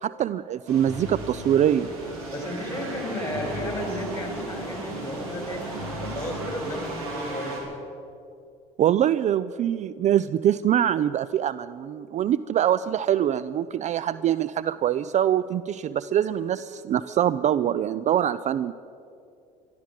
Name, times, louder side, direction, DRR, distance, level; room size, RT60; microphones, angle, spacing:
voice 1, 0.0-1.9 8.8-18.7, right 10 dB, 40° right, 16 dB, 0.4 m, -24 dB
sound 1, 0.7-7.6, right 2 dB, 90° right, 3.3 m, -34 dB
voice 2, 2.3-7.7, left 1 dB, 15° left, 2 dB, 4.5 m, -34 dB
13.0 x 12.5 x 7.5 m, 2.6 s
hypercardioid pair, 70°, 18 cm